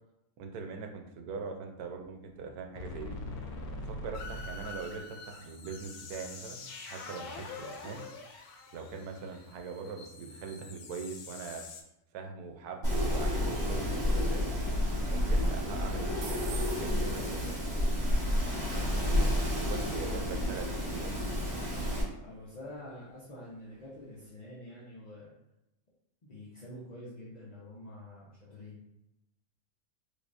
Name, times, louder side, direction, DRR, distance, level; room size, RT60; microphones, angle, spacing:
voice 1, 0.4-3.2 3.8-8.0 8.7-11.6 12.1-14.5 15.1-16.5 16.8-17.8 19.6-21.1, right 5 dB, 85° right, 3 dB, 1.1 m, -41 dB
sound 1, 2.0-2.1 2.5-2.6 2.8-11.8, left 2 dB, 90° left, 1.1 m, -44 dB
sound 2, 12.4-24.3, right 5 dB, 65° right, 0.7 m, -55 dB
Wind, 12.8-22.0, left 1 dB, 45° right, 1.5 m, -30 dB
voice 2, 22.2-25.3 26.2-28.8, left 1 dB, 45° left, -8 dB, 0.6 m, -47 dB
3.5 x 3.2 x 2.5 m, 0.88 s
omnidirectional pair, 1.6 m